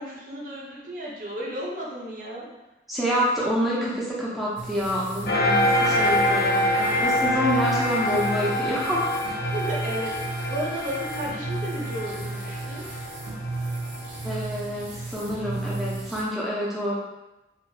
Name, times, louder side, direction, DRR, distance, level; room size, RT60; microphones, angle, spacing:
voice 1, 0.0-2.5 9.5-12.8, equal, 50° right, -4 dB, 0.6 m, -33 dB
voice 2, 2.9-9.4 14.2-16.9, equal, ahead, -7 dB, 0.5 m, -27 dB
sound 1, 4.6-16.2, right 2 dB, 85° right, 0.7 m, -34 dB
sound 2, 5.3-14.3, left 1 dB, 55° left, 0.4 m, -26 dB
2.7 x 2.4 x 2.6 m, 1.0 s
head